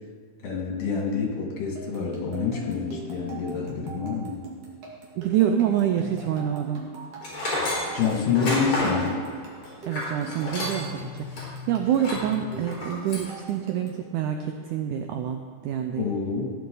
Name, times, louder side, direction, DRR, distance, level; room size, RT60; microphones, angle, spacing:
voice 1, 0.4-4.4 7.9-9.2 16.0-16.4, left 5 dB, 70° left, -1 dB, 3.6 m, -27 dB
sound 1, 1.8-14.1, right 1 dB, 60° right, 3.5 m, -42 dB
voice 2, 5.2-6.8 9.9-16.1, right 9 dB, 80° right, 6 dB, 1.8 m, -26 dB
Tools, 7.2-11.0 11.3-11.4 11.9-12.3 12.7-13.3, left 2 dB, 40° left, 4.6 m, -30 dB
15.0 x 10.0 x 3.9 m, 2.1 s
omnidirectional pair, 4.1 m